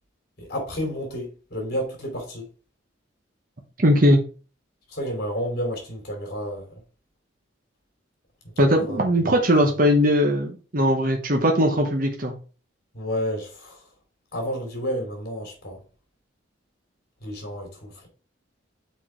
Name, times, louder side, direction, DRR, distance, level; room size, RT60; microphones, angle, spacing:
voice 1, 0.4-2.4 4.9-6.8 8.6-9.3 12.9-13.8 14.3-15.8 17.2-18.1, equal, 50° left, 3.0 m, -31 dB
voice 2, 3.8-4.2 8.6-12.3, equal, 45° right, 0.9 m, -19 dB
6.1 x 4.7 x 4.5 m
head